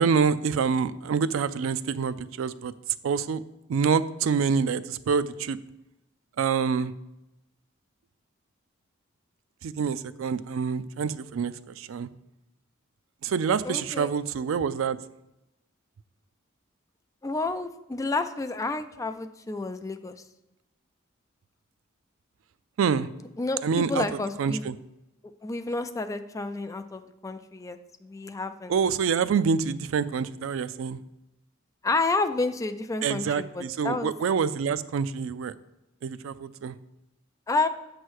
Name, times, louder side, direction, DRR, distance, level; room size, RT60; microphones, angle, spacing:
voice 1, 0.0-2.7 3.0-3.4 3.7-5.6 6.4-6.9 9.6-12.1 13.2-15.0 22.8-23.1 23.6-24.0 24.4-24.7 28.7-31.0 33.0-35.5 36.0-36.8, right 6 dB, 70° right, 15 dB, 0.3 m, -26 dB
voice 2, 13.6-14.1 17.2-20.2 23.4-24.7 25.4-28.8 31.8-34.1 37.5-37.7, left 3 dB, 15° left, 9 dB, 0.4 m, -30 dB
8.2 x 3.1 x 6.3 m, 0.92 s
head